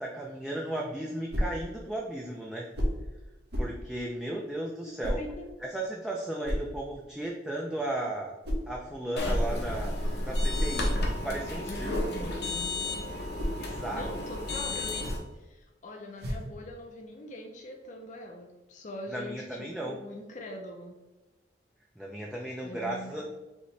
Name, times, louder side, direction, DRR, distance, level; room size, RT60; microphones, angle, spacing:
voice 1, 0.0-2.7 3.6-5.2 5.7-8.3 8.7-11.9 13.6-14.2 19.1-20.0 22.0-23.2, right 1 dB, 5° right, -3 dB, 0.4 m, -35 dB
sound 1, 1.3-1.6 2.7-3.1 3.5-3.8 5.0-5.3 6.4-6.7 8.4-8.7 10.3-10.9 11.6-12.6 13.1-13.6 14.9-15.4 16.2-16.6, equal, 65° right, 1.1 m, -32 dB
voice 2, 4.9-5.5 11.7-12.7 13.9-21.0 22.6-23.2, left 1 dB, 45° left, 1 dB, 0.5 m, -42 dB
sound 2, 9.2-15.2, left 1 dB, 65° left, 0.9 m, -31 dB
5.1 x 2.9 x 3.2 m, 1.1 s
head